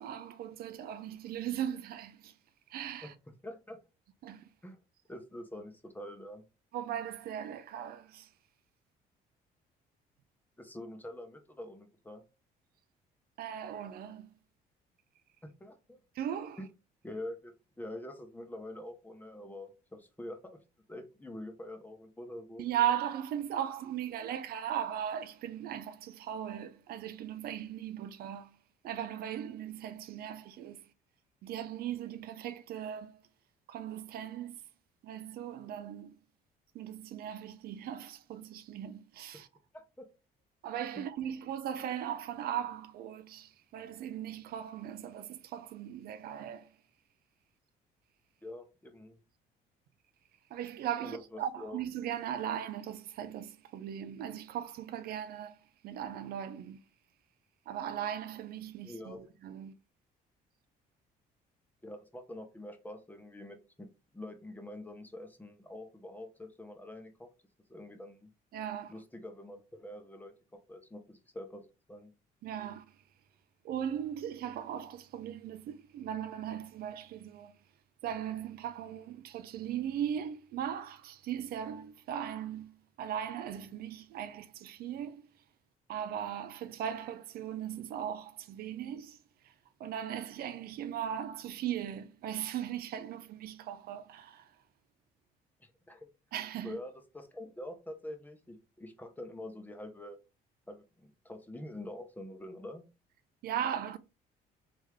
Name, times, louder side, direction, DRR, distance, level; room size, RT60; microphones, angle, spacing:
voice 1, 0.0-2.4 2.7-3.1 4.2-4.5 6.7-8.3 13.4-14.3 16.1-16.6 22.6-28.6 28.8-30.9 31.4-33.2 33.7-34.6 35.0-36.2 36.7-39.5 40.6-46.7 50.5-56.8 57.7-59.7 68.5-68.9 72.4-73.0 73.6-77.5 78.0-85.2 85.9-89.2 89.4-89.5 89.8-94.5 96.3-96.8 103.4-104.0, right 10 dB, 65° right, 0.5 m, -38 dB
voice 2, 3.4-3.8 4.6-4.8 5.1-6.4 10.6-12.2 15.4-16.0 16.6-16.7 17.0-20.6 20.9-22.6 39.7-40.1 41.0-41.1 48.4-49.2 51.0-51.8 58.8-59.3 61.8-63.9 64.1-67.3 67.7-68.3 68.9-72.1 95.6-96.1 96.6-100.2 100.7-102.8, left 1 dB, 10° left, 0.8 m, -45 dB
3.5 x 3.4 x 3.1 m
cardioid pair, 110°, 17 cm